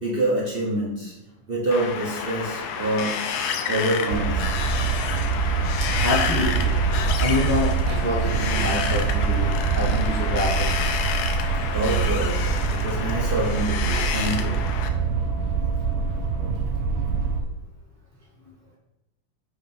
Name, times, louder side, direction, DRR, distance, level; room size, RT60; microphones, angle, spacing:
voice 1, 0.0-1.1 1.5-4.7 11.7-14.5, right 1 dB, 35° right, -5 dB, 1.0 m, -26 dB
Wind, 1.7-14.9, left 7 dB, 75° left, 0.9 m, -29 dB
sound 1, 4.1-17.4, right 5 dB, 85° right, 0.7 m, -24 dB
voice 2, 5.8-10.7, left 1 dB, 15° left, -5 dB, 0.6 m, -27 dB
4.9 x 3.5 x 5.4 m, 0.92 s
omnidirectional pair, 2.2 m